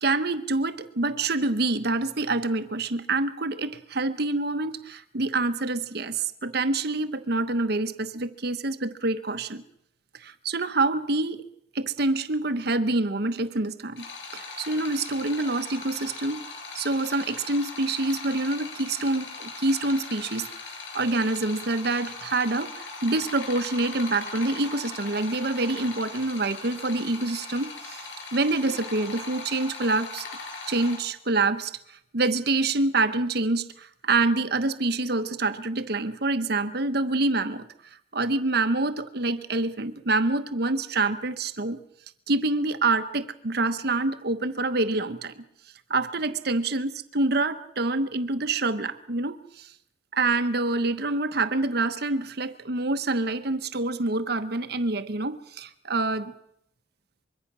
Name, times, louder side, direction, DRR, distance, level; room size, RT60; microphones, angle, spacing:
voice 1, 0.0-9.6 10.1-11.4 11.7-14.1 14.3-16.5 16.7-20.5 20.9-28.1 28.3-30.3 30.7-31.7 32.1-37.7 38.1-41.8 42.3-45.4 45.9-49.7 50.1-56.3, right 2 dB, 60° right, 1.1 m, -26 dB
sound 1, 14.0-31.0, left 4 dB, 85° left, 7.6 m, -39 dB
24.5 x 23.0 x 6.2 m
head